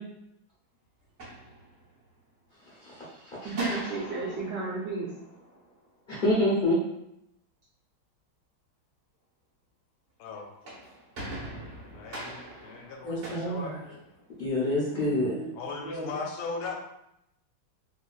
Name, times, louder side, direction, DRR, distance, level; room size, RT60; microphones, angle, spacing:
sound 1, 1.0-2.2 3.5-6.0 10.4-14.5, right 1 dB, 45° right, 1.1 m, -43 dB
voice 1, 2.8-3.6 6.1-6.7 13.0-13.8 14.4-15.4, left 1 dB, 50° left, -8 dB, 0.6 m, -27 dB
voice 2, 3.4-5.1 14.9-15.5 15.8-16.1, right 3 dB, 70° right, -7 dB, 1.1 m, -33 dB
voice 3, 11.9-14.0 15.5-16.8, left 4 dB, 80° left, 2 dB, 1.4 m, -38 dB
3.4 x 2.5 x 2.3 m, 0.81 s
omnidirectional pair, 2.2 m